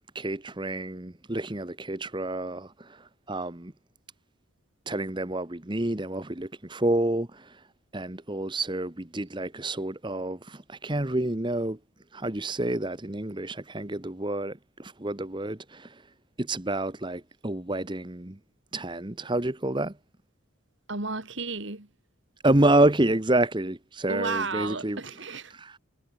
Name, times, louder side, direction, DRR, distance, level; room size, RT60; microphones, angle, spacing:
voice 1, 0.1-3.7 4.9-7.6 7.9-11.8 12.1-16.0 16.4-18.4 18.7-19.9 22.4-25.0 25.5-25.8, right 1 dB, 20° right, 1.1 m, -28 dB
voice 2, 20.9-21.9 24.1-25.5, right 3 dB, 60° right, 3.0 m, -33 dB
head